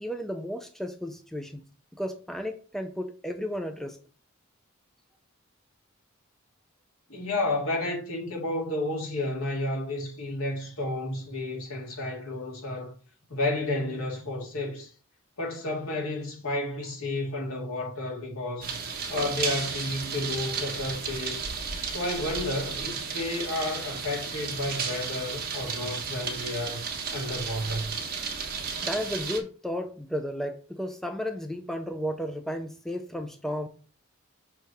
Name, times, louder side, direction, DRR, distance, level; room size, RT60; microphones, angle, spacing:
voice 1, 0.0-1.6 1.9-4.0 28.8-33.7, equal, ahead, 0.4 m, -33 dB
voice 2, 7.1-12.9 13.3-14.9 15.4-18.8 19.1-21.5 21.8-26.9 27.1-28.0, left 2 dB, 75° left, 2.1 m, -31 dB
sound 1, 18.6-29.4, right 5 dB, 45° right, 1.3 m, -33 dB
6.5 x 3.3 x 5.2 m
head